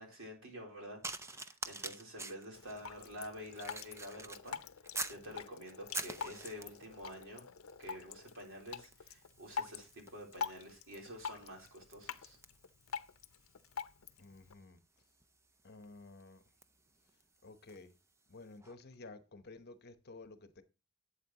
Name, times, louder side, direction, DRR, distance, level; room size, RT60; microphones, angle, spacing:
voice 1, 0.0-4.6 5.1-7.5 7.8-12.4, equal, 65° right, 3.8 m, -49 dB
sound 1, 1.0-5.3 5.7-6.9 7.7-7.9 8.2-17.9 18.6-18.8, right 3 dB, 15° right, 0.5 m, -47 dB
Drip, 2.5-14.5, left 6 dB, 80° left, 0.6 m, -46 dB
voice 2, 14.2-14.8 15.6-16.4 17.4-18.0 18.3-20.6, left 3 dB, 50° left, 1.0 m, -53 dB
11.5 x 8.3 x 2.9 m
head